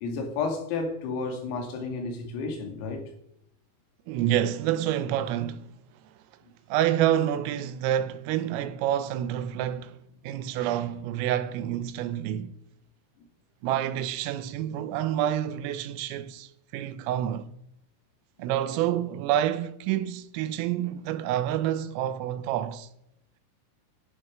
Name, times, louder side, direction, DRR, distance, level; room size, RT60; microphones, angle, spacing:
voice 1, 0.0-3.1, left 4 dB, 85° left, 5.0 m, -31 dB
voice 2, 4.1-5.7 6.7-10.0 10.2-12.6 13.6-17.5 18.4-22.9, right 11 dB, 85° right, 3.4 m, -28 dB
14.5 x 10.5 x 6.2 m
omnidirectional pair, 5.9 m